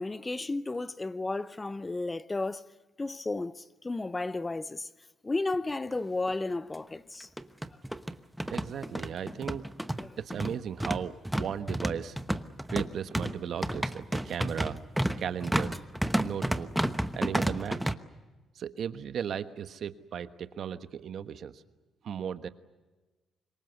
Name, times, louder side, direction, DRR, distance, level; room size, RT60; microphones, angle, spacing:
voice 1, 0.0-2.6 3.0-4.9 5.2-7.3 10.0-10.1, left 2 dB, 20° left, 0.7 m, -33 dB
sound 1, 5.9-6.0 6.3-6.4 7.2-17.9, right 1 dB, 5° right, 1.1 m, -31 dB
voice 2, 8.5-9.6 10.2-12.2 12.7-14.8 15.2-15.8 16.1-16.7 17.1-17.9 18.5-21.6 22.0-22.5, right 8 dB, 65° right, 1.3 m, -36 dB
26.0 x 22.5 x 8.1 m
cardioid pair, 90°, 0 cm